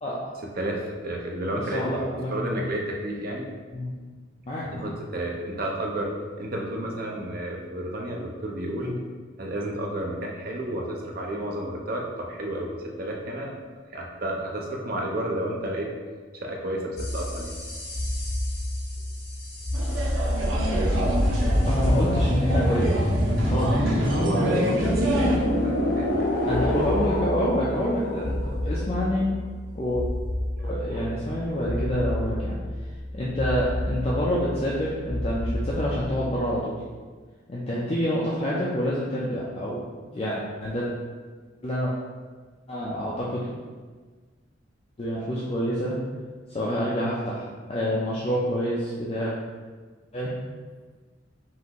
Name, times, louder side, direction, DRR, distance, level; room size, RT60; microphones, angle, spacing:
voice 1, 0.0-0.4 1.7-2.6 3.7-3.9 4.5-4.9 8.8-9.0 21.6-23.1 23.4-24.0 26.4-29.2 29.7-30.1 30.6-32.6 33.1-36.8 37.5-39.8 40.1-40.9 41.6-41.9 42.7-43.5 45.0-46.0 46.5-49.3 50.1-50.3, equal, 30° left, -7 dB, 0.5 m, -27 dB
voice 2, 0.6-1.9 2.3-3.5 4.7-6.1 6.4-8.9 9.4-13.5 13.9-15.9 16.3-17.6 24.1-26.3 30.6-31.0, right 1 dB, 50° right, -1 dB, 0.6 m, -31 dB
sound 1, 17.0-36.6, left 1 dB, 55° left, 0.9 m, -27 dB
sound 2, 19.7-25.4, right 1 dB, 85° right, 0.8 m, -29 dB
5.6 x 2.6 x 3.0 m, 1.4 s
head